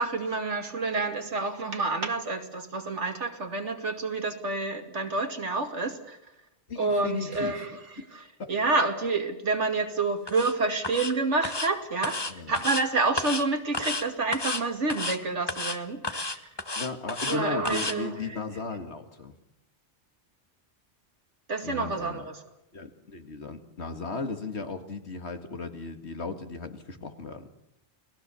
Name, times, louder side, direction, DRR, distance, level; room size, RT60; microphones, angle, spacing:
voice 1, 0.0-6.2 6.8-7.7 8.5-12.2 12.5-16.4 17.3-18.2 21.5-22.4, right 3 dB, 90° right, 5 dB, 2.7 m, -28 dB
voice 2, 6.7-7.7 8.4-8.5 12.3-12.6 16.8-19.3 21.6-22.2 22.7-27.5, left 4 dB, 70° left, 7 dB, 2.3 m, -36 dB
sound 1, 10.3-10.5 10.8-11.1 11.4-11.7 12.0-12.8 13.2-13.4 13.7-14.0 14.3-14.6 14.9-15.2 15.5-15.8 16.0-17.4 17.7-17.9, left 2 dB, 20° left, 1.1 m, -31 dB
29.5 x 19.0 x 7.0 m, 0.88 s
omnidirectional pair, 1.2 m